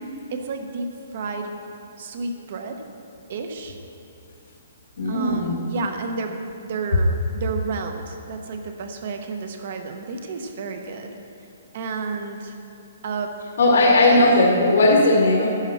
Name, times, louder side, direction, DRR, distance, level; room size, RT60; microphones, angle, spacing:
voice 1, 0.3-0.9 1.1-1.5 2.0-2.8 3.3-3.8 5.1-11.1 11.7-12.5 13.0-13.4 13.8-14.4, right 4 dB, 40° right, 5 dB, 0.9 m, -31 dB
voice 2, 5.0-5.5 13.6-15.5, left 2 dB, 65° left, -2 dB, 1.9 m, -17 dB
11.0 x 10.5 x 4.3 m, 2.8 s
hypercardioid pair, 175°, 0 cm